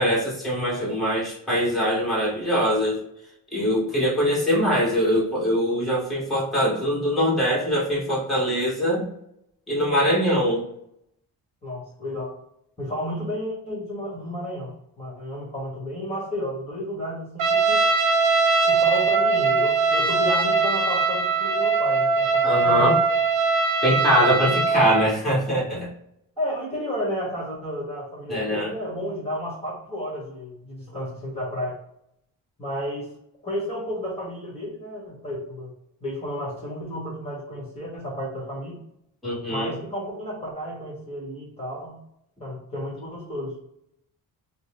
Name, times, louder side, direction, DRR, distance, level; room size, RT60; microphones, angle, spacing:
voice 1, 0.0-3.0 3.5-9.1 9.7-10.7 22.4-23.0 23.8-25.9 28.3-28.7 39.2-39.7, equal, ahead, -6 dB, 1.2 m, -22 dB
voice 2, 11.6-12.3 12.8-14.7 15.0-17.8 18.6-23.0 24.1-24.5 26.4-31.8 32.6-33.1 33.4-35.7 36.0-38.8 39.5-42.0 42.4-43.5, equal, 15° left, -5 dB, 1.2 m, -32 dB
Trumpet, 17.4-25.1, right 4 dB, 60° right, 0.6 m, -21 dB
3.9 x 2.0 x 3.5 m, 0.77 s
cardioid pair, 145°, 36 cm